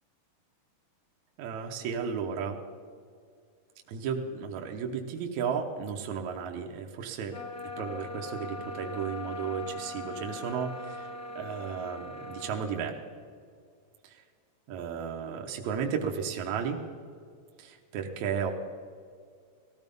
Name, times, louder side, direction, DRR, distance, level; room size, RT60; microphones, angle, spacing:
voice 1, 1.4-2.6 3.9-7.3 7.8-12.9 14.0-14.2 14.7-16.8 17.6-18.5, right 6 dB, 70° right, 2 dB, 2.2 m, -34 dB
sound 1, 7.3-12.9, left 2 dB, 40° left, 1.4 m, -40 dB
18.0 x 14.5 x 5.3 m, 2.2 s
omnidirectional pair, 3.7 m